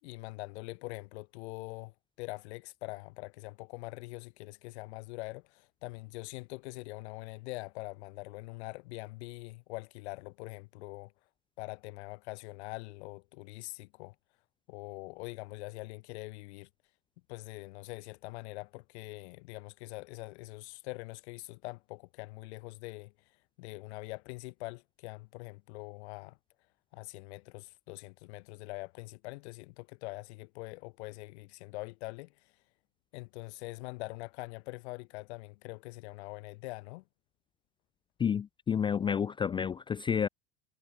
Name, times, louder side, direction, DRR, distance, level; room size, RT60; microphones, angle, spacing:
voice 1, 0.0-11.1 11.6-14.1 14.7-16.7 17.3-23.1 23.6-26.4 26.9-32.3 33.1-37.0, left 23 dB, 75° left, 6.4 m, -43 dB
voice 2, 38.2-40.3, left 7 dB, 15° left, 0.4 m, -30 dB
supercardioid pair, 145°, 33 cm